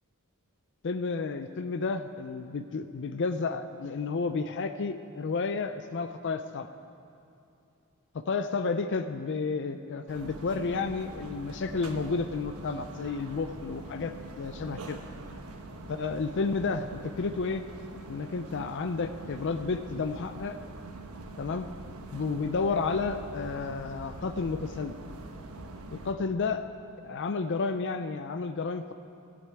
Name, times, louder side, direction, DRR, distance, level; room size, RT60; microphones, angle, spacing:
voice 1, 0.8-6.7 8.1-15.0 15.9-17.6 18.1-20.6 21.4-21.7 22.1-24.9 25.9-26.7 27.0-28.9, left 4 dB, 55° left, 9 dB, 0.5 m, -31 dB
sound 1, 10.1-26.1, right 2 dB, 85° right, 1.2 m, -44 dB
16.0 x 7.8 x 9.4 m, 2.7 s
head